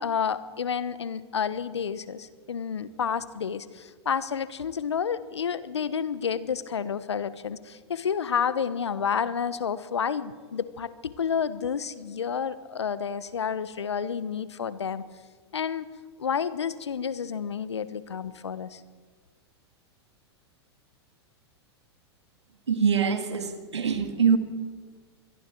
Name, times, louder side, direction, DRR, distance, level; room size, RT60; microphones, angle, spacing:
voice 1, 0.0-15.0 15.5-15.9 16.2-18.8, left 7 dB, 80° left, 1.1 m, -30 dB
voice 2, 22.7-24.4, right 6 dB, 80° right, 2.3 m, -24 dB
26.5 x 22.0 x 4.6 m
hypercardioid pair, 100°, 14 cm